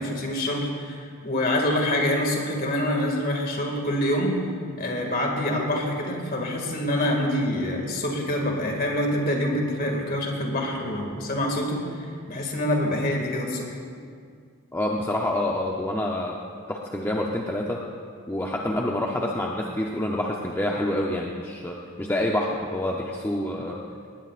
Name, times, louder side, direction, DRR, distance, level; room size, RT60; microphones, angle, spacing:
voice 1, 0.0-4.4 4.8-11.8 12.3-13.8, left 1 dB, 40° left, 1 dB, 2.2 m, -26 dB
voice 2, 14.7-16.4 16.7-17.8 18.3-23.8, left 1 dB, 10° left, -1 dB, 0.7 m, -27 dB
19.0 x 19.0 x 2.5 m, 2.1 s
head